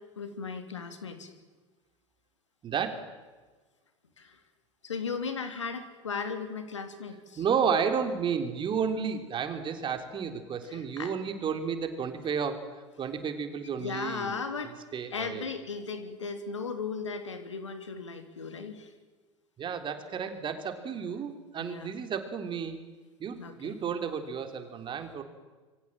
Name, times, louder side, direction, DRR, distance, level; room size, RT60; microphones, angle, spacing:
voice 1, 0.2-1.3 4.2-4.3 4.8-7.4 11.0-11.1 13.8-14.8 15.1-18.9 21.0-21.2 21.6-21.9 23.4-23.7, left 5 dB, 80° left, 8 dB, 3.2 m, -36 dB
voice 2, 2.6-3.1 7.4-12.6 13.0-14.4 14.6-15.5 19.6-22.8 23.2-25.2, right 6 dB, 30° right, 7 dB, 3.6 m, -32 dB
27.0 x 24.5 x 7.6 m, 1.3 s
figure-of-eight pair, 75°, 15 cm